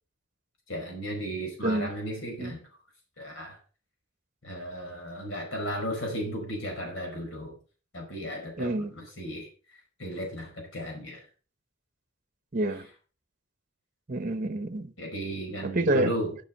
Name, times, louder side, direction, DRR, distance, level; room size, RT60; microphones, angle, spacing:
voice 1, 0.7-2.6 3.2-3.6 4.4-7.6 7.9-9.5 10.0-11.2 15.0-16.4, equal, 70° left, 5.0 m, -35 dB
voice 2, 8.6-8.9 12.5-12.9 14.1-14.9 15.6-16.1, right 2 dB, 40° right, 0.9 m, -27 dB
11.0 x 7.4 x 5.3 m
head